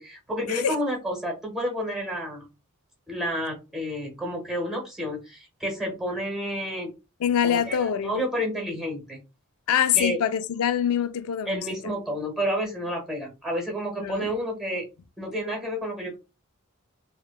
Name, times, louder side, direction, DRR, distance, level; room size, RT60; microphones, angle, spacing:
voice 1, 0.0-2.5 3.1-6.9 7.4-9.2 10.0-10.2 11.5-14.9 15.2-16.2, equal, ahead, 0.8 m, -30 dB
voice 2, 7.2-8.2 9.7-11.6 14.0-14.3, left 9 dB, 70° left, 0.3 m, -24 dB
2.7 x 2.1 x 2.3 m
head